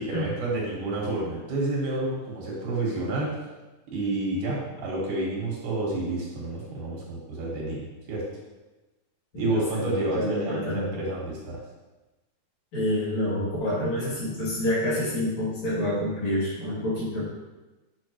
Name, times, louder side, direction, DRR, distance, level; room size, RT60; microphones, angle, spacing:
voice 1, 0.0-3.3 3.9-8.2 9.3-11.6, right 2 dB, 85° right, -4 dB, 3.4 m, -29 dB
voice 2, 9.3-11.0 12.7-17.2, left 1 dB, 60° left, -8 dB, 4.2 m, -28 dB
8.5 x 6.4 x 3.2 m, 1.1 s
omnidirectional pair, 3.5 m